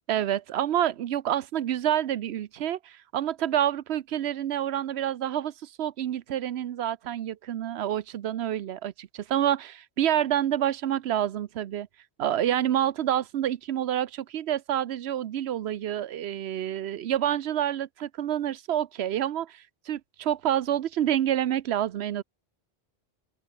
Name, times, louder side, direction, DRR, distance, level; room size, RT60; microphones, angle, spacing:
voice 1, 0.1-11.9 12.2-22.2, right 11 dB, 80° right, 0.9 m, -28 dB
open air
omnidirectional pair, 1.1 m